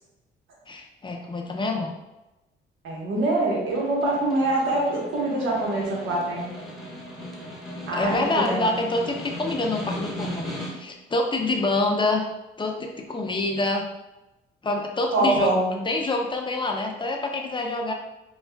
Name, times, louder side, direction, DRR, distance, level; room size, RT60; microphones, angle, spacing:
voice 1, 0.7-1.9 7.9-10.5 10.7-12.2 12.6-13.8 14.6-15.5 15.9-17.9, left 2 dB, 25° left, 2 dB, 0.5 m, -26 dB
voice 2, 2.8-6.5 7.9-8.6 15.1-15.8, right 2 dB, 80° right, -3 dB, 1.2 m, -24 dB
Snare drum, 3.5-11.0, left 1 dB, ahead, 1.0 m, -37 dB
5.2 x 2.3 x 2.3 m, 0.98 s
cardioid pair, 90°, 20 cm